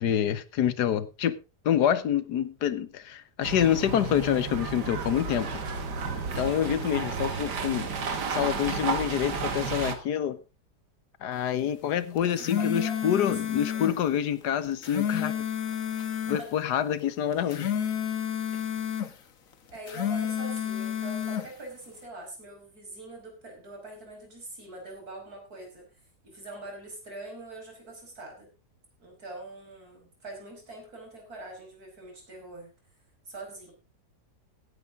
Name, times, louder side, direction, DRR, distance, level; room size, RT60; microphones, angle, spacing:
voice 1, 0.0-1.4 1.6-5.5 6.3-7.9 8.3-10.4 11.2-15.3 16.3-17.7, left 9 dB, 85° left, 1.6 m, -27 dB
sound 1, 3.4-9.9, right 4 dB, 90° right, 2.3 m, -32 dB
sound 2, 12.2-14.0 14.6-16.4 17.3-19.1 19.7-21.5, left 9 dB, 55° left, 1.6 m, -30 dB
voice 2, 12.2-13.8 16.3-16.6 17.3-17.8 19.7-28.5 29.0-32.7 33.3-33.7, right 2 dB, 65° right, 5.8 m, -44 dB
16.5 x 10.5 x 3.7 m
omnidirectional pair, 1.7 m